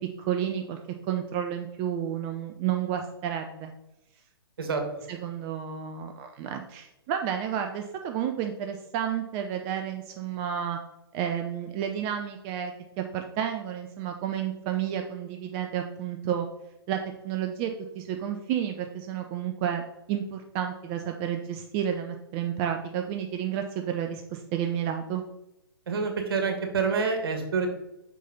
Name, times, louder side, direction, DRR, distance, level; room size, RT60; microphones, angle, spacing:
voice 1, 0.2-3.7 5.1-10.8 11.1-16.5 16.9-17.0 17.2-19.8 20.1-25.2, right 9 dB, 30° right, 5 dB, 0.6 m, -31 dB
voice 2, 25.9-27.7, right 5 dB, 65° right, 4 dB, 1.8 m, -27 dB
5.8 x 4.6 x 5.2 m, 0.90 s
figure-of-eight pair, 125°, 13 cm